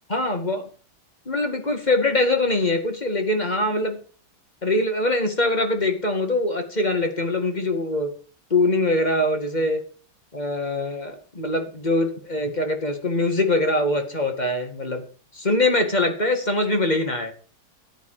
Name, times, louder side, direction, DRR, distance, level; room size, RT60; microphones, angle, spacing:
voice 1, 0.1-0.7 1.3-4.0 4.6-8.2 8.5-9.9 10.3-15.0 15.3-17.3, left 2 dB, 20° left, 5 dB, 2.1 m, -23 dB
14.0 x 10.5 x 5.0 m, 0.40 s
omnidirectional pair, 2.2 m